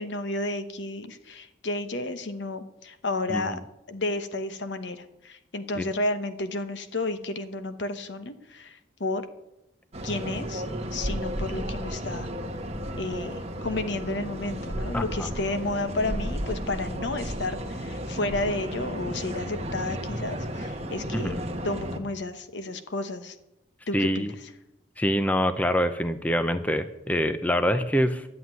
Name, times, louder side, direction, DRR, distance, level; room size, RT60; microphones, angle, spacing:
voice 1, 0.0-3.6 3.9-9.3 10.0-10.6 10.9-12.3 13.0-21.3 21.6-23.4 23.9-24.5, left 2 dB, 70° left, 10 dB, 1.1 m, -32 dB
sound 1, 9.9-22.0, equal, 35° right, 1.3 m, -33 dB
voice 2, 14.9-15.3 21.1-21.4 23.9-24.3 25.0-28.3, equal, 10° left, 10 dB, 0.6 m, -25 dB
11.5 x 7.7 x 9.6 m, 0.90 s
head